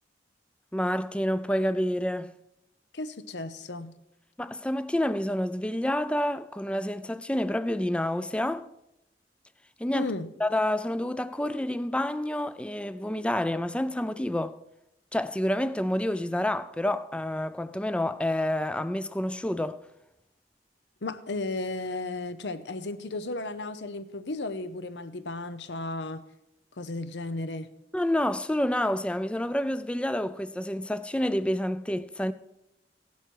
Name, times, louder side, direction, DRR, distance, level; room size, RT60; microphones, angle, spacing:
voice 1, 0.7-2.3 4.4-8.7 9.8-10.1 10.4-14.6 15.1-19.8 27.9-32.3, left 1 dB, 5° left, 0.4 m, -28 dB
voice 2, 2.9-3.9 9.9-10.3 21.0-26.2 26.8-27.7, left 2 dB, 80° left, 0.8 m, -34 dB
16.0 x 11.5 x 4.6 m
head